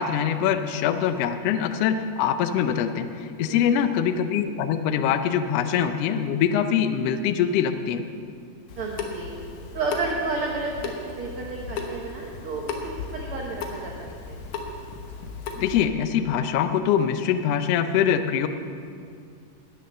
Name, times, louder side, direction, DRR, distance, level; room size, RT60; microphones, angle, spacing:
voice 1, 0.0-8.0 15.6-18.5, left 8 dB, 85° left, 9 dB, 1.4 m, -23 dB
Water tap faucet / Sink (filling or washing) / Drip, 8.7-15.9, left 4 dB, 70° left, 2.4 m, -35 dB
voice 2, 8.8-9.3 9.7-14.4, right 3 dB, 60° right, -1 dB, 1.6 m, -31 dB
18.5 x 6.8 x 6.7 m, 2.4 s
omnidirectional pair, 3.7 m